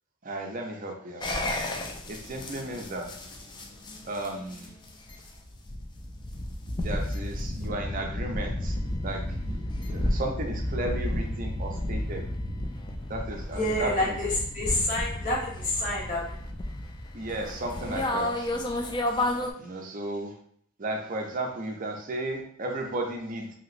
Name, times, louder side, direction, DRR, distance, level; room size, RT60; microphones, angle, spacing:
voice 1, 0.2-1.3 2.1-3.1 4.1-4.7 6.8-12.2 13.1-14.2 17.1-18.5 19.6-20.3 20.8-23.5, right 1 dB, 40° right, 1 dB, 0.5 m, -34 dB
sound 1, 1.2-19.5, left 1 dB, 20° left, 0.3 m, -32 dB
voice 2, 13.5-16.3, left 1 dB, 40° left, -5 dB, 1.0 m, -28 dB
2.9 x 2.8 x 2.5 m, 0.65 s
head